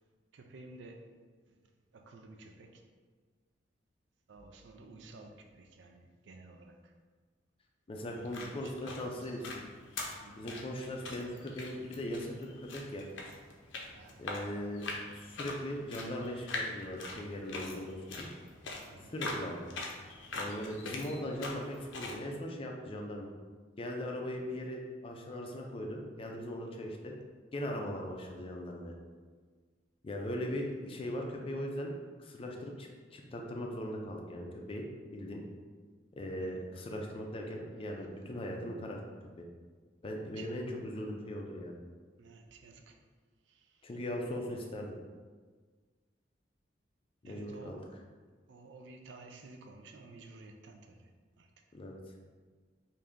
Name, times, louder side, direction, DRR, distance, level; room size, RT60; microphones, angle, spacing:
voice 1, 0.3-1.1 1.5-1.6 1.9-2.8 4.3-6.9 8.0-9.4 10.2-10.5 13.9-14.2 18.9-19.2 36.4-36.7 40.4-40.5 42.2-43.0 43.5-43.9 47.2-47.9 48.5-51.1 51.4-51.5, right 3 dB, 70° right, 4 dB, 0.4 m, -53 dB
voice 2, 7.9-9.5 10.4-13.1 14.2-18.3 19.0-19.6 20.3-23.3 23.8-27.1 27.5-28.9 30.0-31.9 32.2-34.8 35.1-35.5 36.2-39.0 39.4-39.5 40.0-41.8 43.8-45.0 47.2-47.8 51.7-52.0, left 1 dB, 30° left, 1 dB, 0.4 m, -39 dB
sound 1, 8.1-22.2, left 2 dB, 80° left, 0.6 m, -43 dB
3.3 x 2.6 x 3.7 m, 1.5 s
head